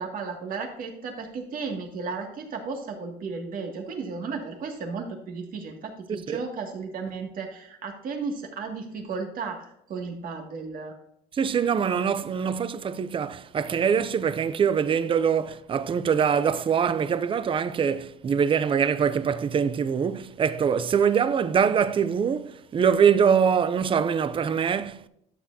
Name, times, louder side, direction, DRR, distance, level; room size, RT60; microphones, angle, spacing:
voice 1, 0.0-10.9, right 4 dB, 55° right, 2.3 m, -34 dB
voice 2, 11.3-25.1, right 7 dB, 30° right, 0.5 m, -23 dB
12.5 x 7.4 x 2.8 m
cardioid pair, 110°, 17 cm